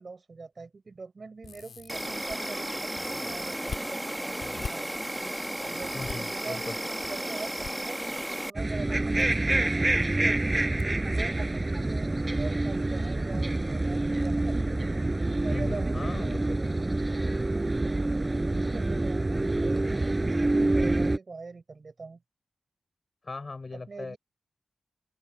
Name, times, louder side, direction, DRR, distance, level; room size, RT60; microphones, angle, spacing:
voice 1, 0.0-4.9 5.6-10.4 11.1-14.6 15.2-16.4 16.7-17.0 17.5-17.7 18.5-20.0 20.5-22.2 23.7-24.2, right 4 dB, 55° right, 5.7 m, -43 dB
sound 1, 1.4-2.4 2.9-3.9 4.4-4.7 5.8-6.2 7.0-7.7 8.8-9.2 9.5-9.6 10.8-10.9 11.3-11.4, left 6 dB, 85° left, 2.1 m, -41 dB
Insect, 1.9-8.5, right 1 dB, 10° right, 1.1 m, -34 dB
voice 2, 5.9-6.8 15.5-16.6 23.2-24.2, left 3 dB, 45° left, 3.9 m, -38 dB
sound 2, 8.6-21.2, right 2 dB, 25° right, 5.7 m, -27 dB
open air
wide cardioid pair, 75°, 0 cm